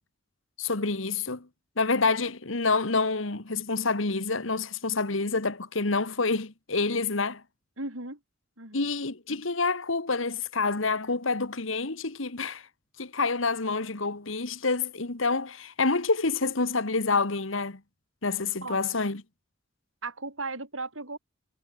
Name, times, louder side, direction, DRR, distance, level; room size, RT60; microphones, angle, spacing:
voice 1, 0.6-1.5 1.8-7.4 8.7-12.6 13.0-17.8 18.2-19.2, left 3 dB, 70° left, 1.9 m, -27 dB
voice 2, 7.8-8.2 8.6-8.9 18.6-19.0 20.0-21.2, right 3 dB, 80° right, 7.9 m, -36 dB
head